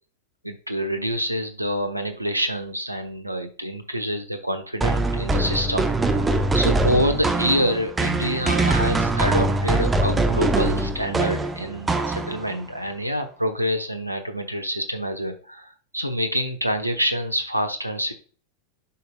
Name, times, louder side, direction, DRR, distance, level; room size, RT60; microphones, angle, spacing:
voice 1, 0.4-6.3 6.5-18.1, equal, 85° right, 6 dB, 1.0 m, -26 dB
sound 1, 4.8-12.6, right 2 dB, 15° right, 0.8 m, -23 dB
9.8 x 5.3 x 2.3 m, 0.39 s
figure-of-eight pair, 90°, 0 cm